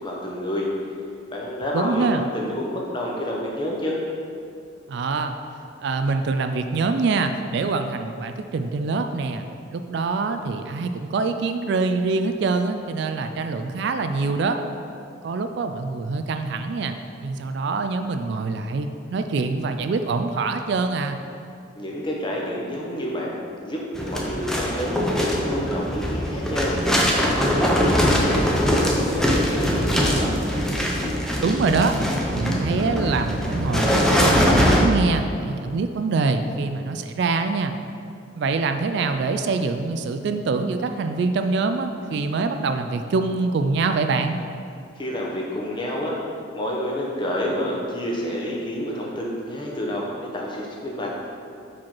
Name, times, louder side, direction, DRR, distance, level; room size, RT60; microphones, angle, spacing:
voice 1, 0.0-0.7 1.3-4.0 21.7-26.7 27.3-30.3 45.0-46.2 46.5-51.1, left 1 dB, 25° left, -3 dB, 0.9 m, -29 dB
voice 2, 1.7-2.2 4.9-5.4 5.8-9.4 9.7-14.6 15.2-16.9 17.2-21.2 31.4-32.0 32.3-37.7 38.4-44.4, right 4 dB, 60° right, 7 dB, 0.3 m, -24 dB
sound 1, 23.9-34.8, equal, 5° left, 0.6 m, -22 dB
5.6 x 5.0 x 4.4 m, 2.4 s
head